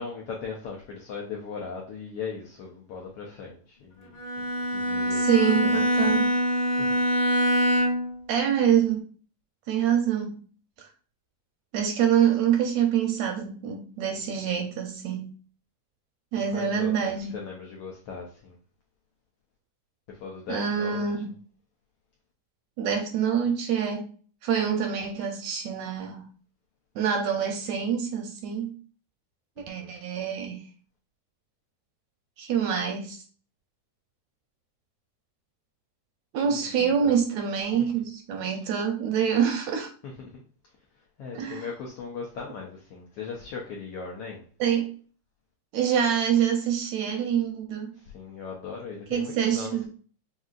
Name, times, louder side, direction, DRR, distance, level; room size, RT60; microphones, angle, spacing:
voice 1, 0.0-4.2 4.5-6.2 6.8-7.0 16.5-18.6 20.1-21.1 29.6-29.9 36.4-37.2 40.0-40.4 41.2-44.4 48.0-49.9, left 5 dB, 80° left, -1 dB, 1.3 m, -39 dB
Bowed string instrument, 4.2-8.2, equal, 45° left, 1.7 m, -24 dB
voice 2, 5.1-6.3 8.3-9.0 9.7-10.4 10.8-10.9 11.7-15.3 16.3-17.3 20.5-21.3 22.8-24.1 24.4-26.3 26.9-28.7 29.7-30.6 32.4-33.2 36.3-39.9 41.3-41.6 44.6-44.9 45.7-47.9 49.1-49.9, right 8 dB, 80° right, 3 dB, 1.7 m, -26 dB
6.2 x 2.7 x 2.4 m, 0.42 s
omnidirectional pair, 3.5 m